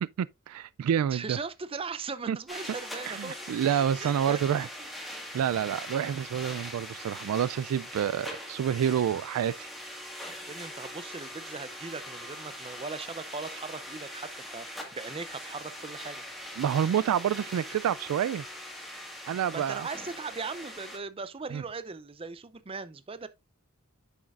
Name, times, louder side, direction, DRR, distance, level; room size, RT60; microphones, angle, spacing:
voice 1, 0.0-1.4 2.3-2.4 3.1-4.7 5.3-9.7 16.6-18.4 19.3-19.9 21.5-21.6, right 9 dB, 85° right, 0.3 m, -28 dB
voice 2, 1.1-3.4 3.7-4.9 10.5-16.2 19.5-23.3, right 4 dB, 25° right, 0.5 m, -39 dB
sound 1, 2.5-21.0, equal, ahead, 1.6 m, -42 dB
9.0 x 6.4 x 2.4 m
head